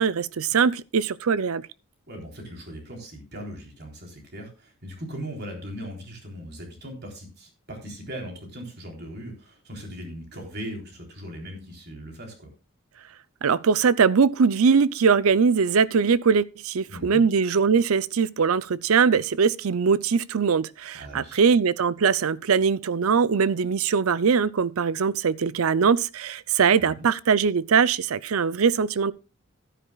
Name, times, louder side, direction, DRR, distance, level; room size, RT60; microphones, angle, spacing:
voice 1, 0.0-1.6 13.4-29.1, right 6 dB, 80° right, 0.5 m, -21 dB
voice 2, 2.1-12.5 16.9-17.2 21.0-21.4 26.8-26.9, equal, 50° right, 3.7 m, -39 dB
15.0 x 10.0 x 2.4 m
head